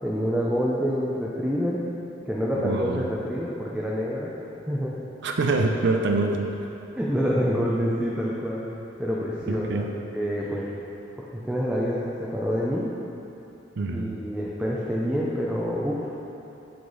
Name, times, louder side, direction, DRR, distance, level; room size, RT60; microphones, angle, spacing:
voice 1, 0.0-1.8 2.2-4.3 4.7-5.0 7.0-8.7 9.0-9.9 10.1-10.7 11.2-12.9 13.9-16.2, equal, 5° right, -5 dB, 0.5 m, -27 dB
voice 2, 2.6-3.0 5.2-6.5 9.5-9.9 13.8-14.2, right 3 dB, 60° right, 3 dB, 0.5 m, -25 dB
7.8 x 5.8 x 3.9 m, 3.0 s
head